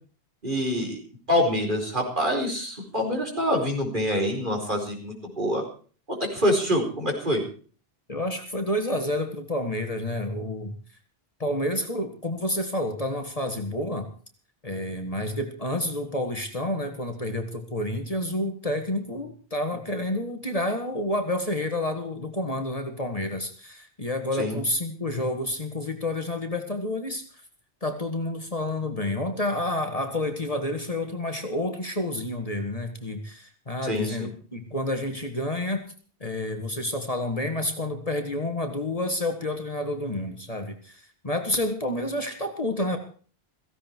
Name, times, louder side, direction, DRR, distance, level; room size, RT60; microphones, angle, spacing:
voice 1, 0.4-1.0 1.3-5.6 6.1-7.4 24.4-24.6 33.8-34.3, equal, 50° right, 2 dB, 4.9 m, -26 dB
voice 2, 8.1-10.8 11.4-14.1 14.6-27.2 27.8-35.9 36.2-43.0, left 1 dB, 35° left, 6 dB, 1.9 m, -29 dB
16.5 x 16.0 x 4.6 m, 0.41 s
omnidirectional pair, 1.1 m